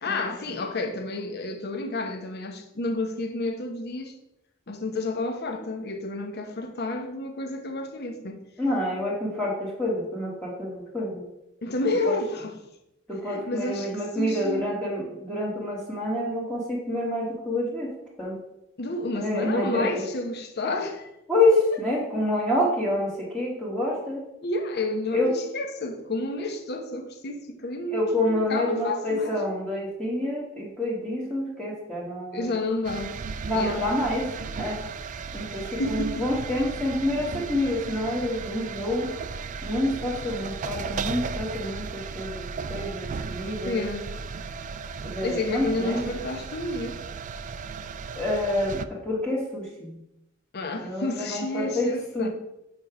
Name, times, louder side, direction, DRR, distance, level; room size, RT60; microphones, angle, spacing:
voice 1, 0.0-4.2 4.7-8.4 11.6-12.6 13.2-14.6 18.8-21.1 24.4-29.4 32.3-33.2 33.5-33.8 35.5-36.4 43.6-44.1 45.2-47.0 50.5-52.3, left 2 dB, 55° left, 0.8 m, -30 dB
voice 2, 8.6-11.2 12.0-12.1 13.1-17.9 18.2-18.4 19.1-19.9 21.3-24.2 25.1-25.3 27.9-32.5 33.5-34.3 34.6-34.8 35.3-39.1 39.6-43.8 45.0-46.1 48.1-49.9 50.8-51.9 52.1-52.3, left 1 dB, 5° left, 1.2 m, -27 dB
sound 1, 32.8-48.9, right 5 dB, 40° right, 0.3 m, -35 dB
5.7 x 5.2 x 4.9 m
head